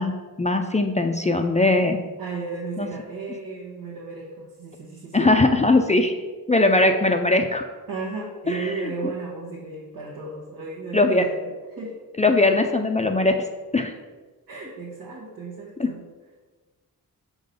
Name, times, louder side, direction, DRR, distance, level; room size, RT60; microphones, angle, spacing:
voice 1, 0.0-2.0 2.8-2.9 5.1-6.1 6.5-7.6 8.5-9.1 10.9-11.3 12.2-13.5 13.7-13.9 15.8-15.9, left 2 dB, 20° left, 5 dB, 0.4 m, -20 dB
voice 2, 2.2-5.3 7.9-11.9 14.5-16.0, right 4 dB, 75° right, -6 dB, 1.4 m, -34 dB
6.4 x 3.9 x 5.1 m, 1.3 s
cardioid pair, 70°, 37 cm